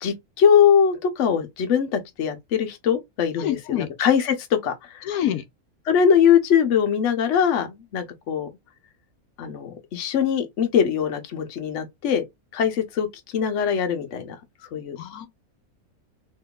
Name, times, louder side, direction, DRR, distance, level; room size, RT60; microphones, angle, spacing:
voice 1, 0.0-5.1 5.9-8.5 9.4-12.2 12.5-13.1 13.3-14.4 14.7-15.0, left 7 dB, 60° left, 1.0 m, -21 dB
voice 2, 3.4-3.9 5.0-5.4 15.0-15.3, left 11 dB, 85° left, 1.1 m, -26 dB
3.5 x 3.1 x 2.3 m
omnidirectional pair, 1.5 m